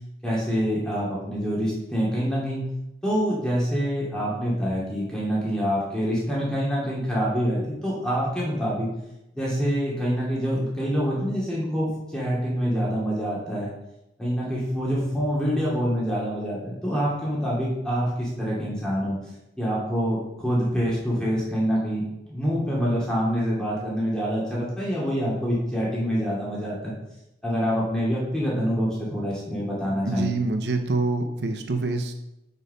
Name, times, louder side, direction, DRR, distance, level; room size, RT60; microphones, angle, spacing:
voice 1, 0.2-2.6 3.0-8.9 9.3-13.7 14.2-19.2 19.6-22.0 22.3-26.9 27.4-30.3, equal, 5° left, -6 dB, 2.6 m, -26 dB
voice 2, 30.0-32.1, right 3 dB, 80° right, 6 dB, 0.7 m, -26 dB
6.0 x 5.4 x 5.6 m, 0.89 s
head